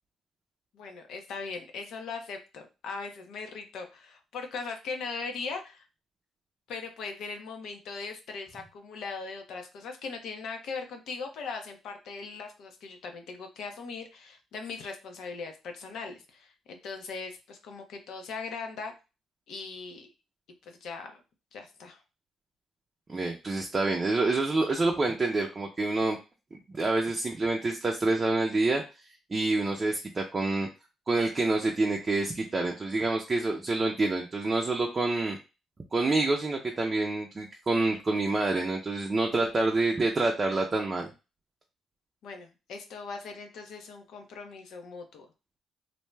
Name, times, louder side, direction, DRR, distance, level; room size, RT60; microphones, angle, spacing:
voice 1, 0.7-5.9 6.7-18.9 19.5-20.1 20.7-21.2 21.5-22.0 42.2-45.3, left 4 dB, 75° left, 4 dB, 0.7 m, -39 dB
voice 2, 23.1-26.2 26.5-28.8 29.3-30.7 31.1-35.4 35.9-41.1, right 2 dB, 30° right, 1 dB, 0.5 m, -27 dB
2.6 x 2.1 x 3.2 m, 0.28 s
cardioid pair, 90°, 0 cm